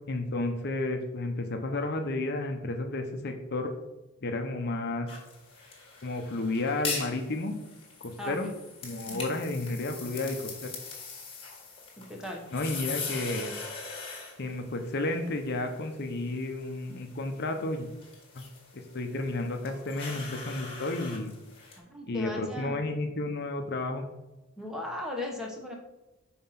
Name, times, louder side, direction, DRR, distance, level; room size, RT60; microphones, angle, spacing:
voice 1, 0.1-3.7 4.2-5.1 6.0-7.6 8.0-8.5 8.8-10.4 10.6-10.7 12.5-13.5 14.4-17.9 18.3-18.4 18.9-21.3 22.1-24.1, left 2 dB, 50° left, 5 dB, 0.7 m, -32 dB
sound 1, 5.1-21.8, left 4 dB, 25° left, 1.6 m, -42 dB
voice 2, 8.2-8.5 9.1-9.3 12.0-12.4 21.8-22.9 24.6-25.7, left 1 dB, 5° right, 0 dB, 1.1 m, -37 dB
5.7 x 4.3 x 5.7 m, 1.0 s
head